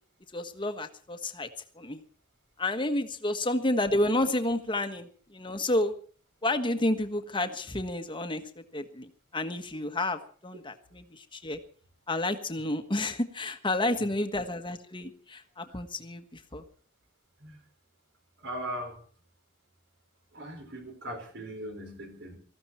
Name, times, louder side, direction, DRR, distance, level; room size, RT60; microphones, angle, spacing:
voice 1, 0.3-1.5 1.7-2.0 2.6-5.9 6.4-11.6 12.1-16.6, left 1 dB, 25° left, 8 dB, 1.4 m, -30 dB
voice 2, 18.4-19.0 20.3-22.4, right 1 dB, 65° right, 4 dB, 5.0 m, -39 dB
19.5 x 14.5 x 4.3 m, 0.42 s
head